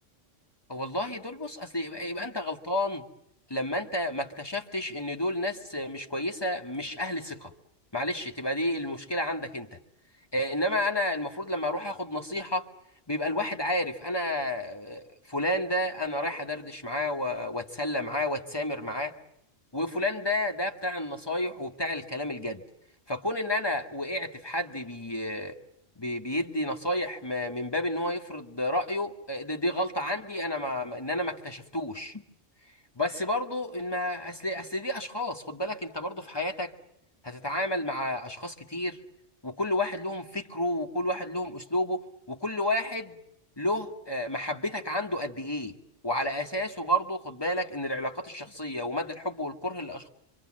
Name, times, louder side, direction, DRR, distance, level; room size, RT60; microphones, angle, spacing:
voice 1, 0.7-3.0 3.5-7.5 7.9-9.8 10.3-12.7 13.1-19.1 19.7-22.6 23.1-25.6 26.0-32.2 33.0-36.7 37.2-39.0 39.4-43.2 43.6-45.8 46.0-50.1, left 1 dB, 20° left, 3 dB, 1.9 m, -31 dB
26.5 x 25.5 x 7.6 m, 0.78 s
omnidirectional pair, 1.3 m